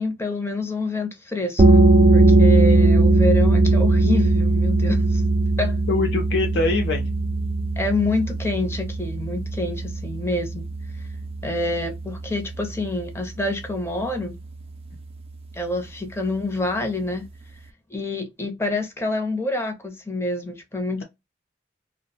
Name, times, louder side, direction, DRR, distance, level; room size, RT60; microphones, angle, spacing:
voice 1, 0.0-1.6 2.1-5.2 5.6-5.8 7.8-10.6 11.4-14.4 15.5-17.3 17.9-21.0, left 2 dB, 15° left, 0.6 m, -27 dB
sound 1, 1.6-13.0, right 2 dB, 30° right, 0.3 m, -19 dB
voice 2, 5.9-7.0, left 3 dB, 65° left, 0.4 m, -24 dB
2.5 x 2.0 x 2.7 m
head